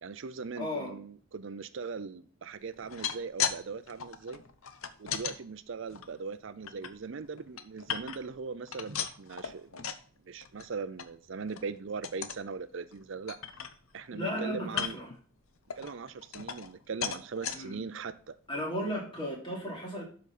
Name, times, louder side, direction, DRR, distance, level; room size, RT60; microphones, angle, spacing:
voice 1, 0.0-4.4 5.0-9.9 10.2-13.4 13.9-15.0 15.8-18.3, right 5 dB, 60° right, 0.5 m, -40 dB
voice 2, 0.6-0.9 8.9-9.0 14.1-15.1 17.5-17.8 18.5-20.0, equal, 25° left, 3.0 m, -35 dB
sound 1, 2.7-3.6 3.9-5.4 5.9-6.9 7.3-8.4 8.7-10.1 10.4-10.7 11.0-11.1 11.5-11.7 12.0-12.4 12.9-13.0 13.3-14.1 14.7-15.2 15.7-16.8 17.0-17.6 18.2-18.3 18.6-18.7, left 8 dB, 75° left, 0.8 m, -36 dB
12.0 x 5.2 x 4.2 m
head